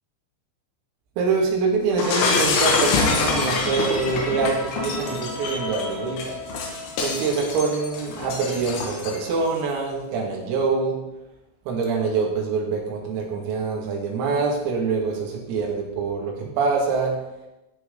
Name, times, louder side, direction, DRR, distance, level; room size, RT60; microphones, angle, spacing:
voice 1, 1.2-6.4 7.0-11.0 11.7-17.2, right 4 dB, 85° right, -1 dB, 4.9 m, -25 dB
Shatter, 2.0-9.4, left 4 dB, 70° left, 4.1 m, -25 dB
sound 1, 2.9-10.0, left 2 dB, 85° left, 5.9 m, -39 dB
15.5 x 8.8 x 3.9 m, 0.95 s
omnidirectional pair, 5.9 m